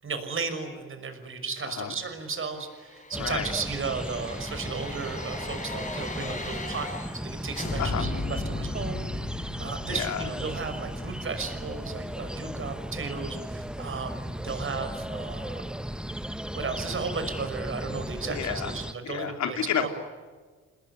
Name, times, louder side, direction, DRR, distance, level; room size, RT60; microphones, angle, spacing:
voice 1, 0.0-6.9 7.1-15.6 16.5-19.9, right 4 dB, 45° right, 8 dB, 5.9 m, -35 dB
voice 2, 1.6-2.0 3.2-3.5 7.8-8.1 9.9-10.3 18.2-18.7 19.0-19.9, left 8 dB, 65° left, 5 dB, 3.9 m, -30 dB
sound 1, 2.5-7.3 7.5-12.4 12.8-12.9, left 2 dB, 25° left, 5.3 m, -37 dB
sound 2, 3.1-18.9, equal, 5° right, 1.0 m, -36 dB
29.0 x 20.5 x 9.6 m, 1.4 s
cardioid pair, 90°, 30 cm